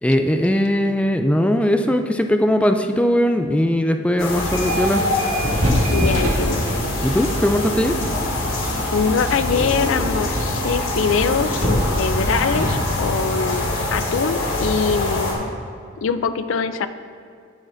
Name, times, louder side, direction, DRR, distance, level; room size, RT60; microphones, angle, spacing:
voice 1, 0.0-5.1 7.0-8.0, equal, 5° left, 6 dB, 0.3 m, -19 dB
sound 1, 4.2-15.3, left 1 dB, 90° left, 2.2 m, -24 dB
sound 2, 4.4-4.9 5.2-13.6, equal, 65° right, 1.9 m, -26 dB
voice 2, 5.9-6.6 8.9-13.6 13.9-15.5 16.0-16.9, left 5 dB, 75° left, 11 dB, 0.4 m, -23 dB
16.5 x 6.4 x 2.6 m, 2.3 s
head